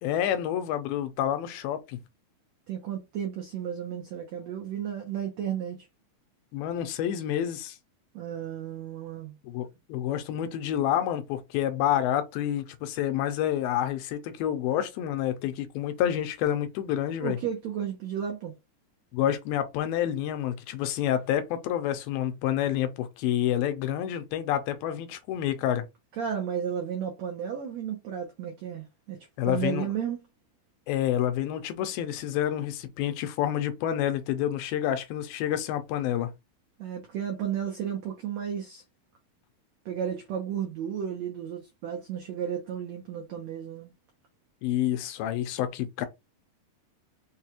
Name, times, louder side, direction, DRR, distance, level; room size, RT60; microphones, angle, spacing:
voice 1, 0.0-2.0 6.5-7.8 9.4-17.4 19.1-25.9 29.4-29.9 30.9-36.3 44.6-46.1, left 11 dB, 80° left, 2.4 m, -28 dB
voice 2, 2.7-5.8 8.1-9.3 17.2-18.5 26.2-29.2 29.4-30.2 36.8-38.8 39.8-43.9, right 8 dB, 85° right, 1.5 m, -33 dB
6.3 x 2.3 x 2.8 m
omnidirectional pair, 4.3 m